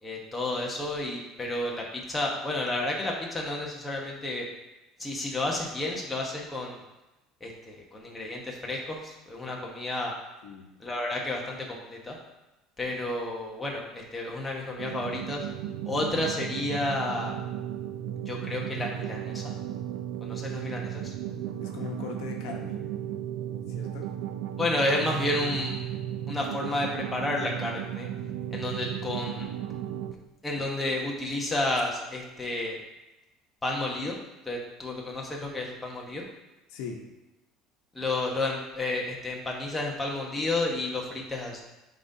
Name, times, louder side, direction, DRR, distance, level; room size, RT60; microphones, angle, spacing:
voice 1, 0.0-4.4 5.0-6.8 7.4-10.1 10.8-12.2 12.8-15.5 15.8-17.3 18.3-19.4 20.2-21.1 24.6-25.9 26.3-28.1 28.5-29.4 30.4-32.8 33.6-34.2 34.4-36.2 37.9-41.6, left 2 dB, 10° left, -2 dB, 1.1 m, -31 dB
sound 1, 14.8-30.1, right 10 dB, 85° right, 0.4 m, -35 dB
voice 2, 21.6-22.8 23.7-24.1 36.7-37.0, left 5 dB, 80° left, 2 dB, 1.0 m, -39 dB
9.5 x 3.9 x 2.7 m, 1.0 s
cardioid pair, 140°, 0 cm